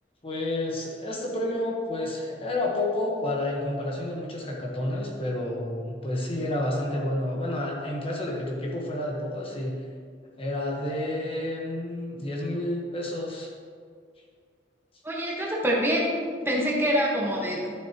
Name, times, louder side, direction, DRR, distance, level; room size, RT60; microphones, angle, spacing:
voice 1, 0.2-9.7 10.4-13.5, left 1 dB, 35° left, -2 dB, 1.2 m, -30 dB
voice 2, 15.0-17.7, equal, 15° right, -4 dB, 1.4 m, -26 dB
11.5 x 7.0 x 3.0 m, 2.1 s
head